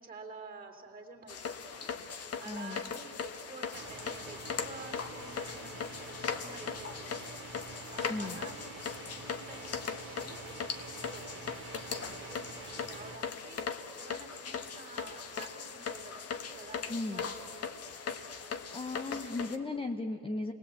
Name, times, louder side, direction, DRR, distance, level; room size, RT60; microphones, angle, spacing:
voice 1, 0.0-1.9 2.4-12.5 12.8-13.7 14.0-17.7, right 4 dB, 20° right, 2 dB, 3.2 m, -50 dB
sound 1, 1.3-19.6, left 6 dB, 35° left, 1.4 m, -39 dB
voice 2, 2.5-2.8 8.1-8.4 16.9-17.2 18.7-20.5, left 2 dB, 15° left, 4 dB, 0.8 m, -36 dB
sound 2, 3.7-13.2, right 4 dB, 50° right, 2.3 m, -47 dB
29.0 x 19.5 x 8.5 m, 2.4 s
cardioid pair, 150°, 40 cm